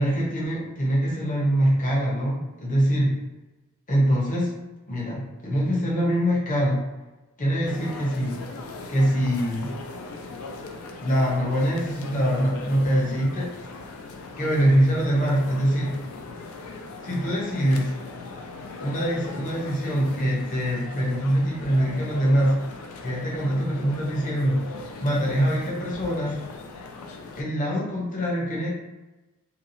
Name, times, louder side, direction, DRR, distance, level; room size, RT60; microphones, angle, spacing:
voice 1, 0.0-3.1 3.9-4.5 4.9-6.8 7.4-8.4 8.9-9.7 11.0-13.8 14.4-15.9 17.0-17.9 18.8-22.5 23.0-24.6 25.0-26.4 27.4-28.7, equal, 40° left, -4 dB, 0.8 m, -23 dB
sound 1, 7.6-27.4, left 3 dB, 75° left, 0.4 m, -39 dB
2.8 x 2.2 x 2.6 m, 1.1 s
head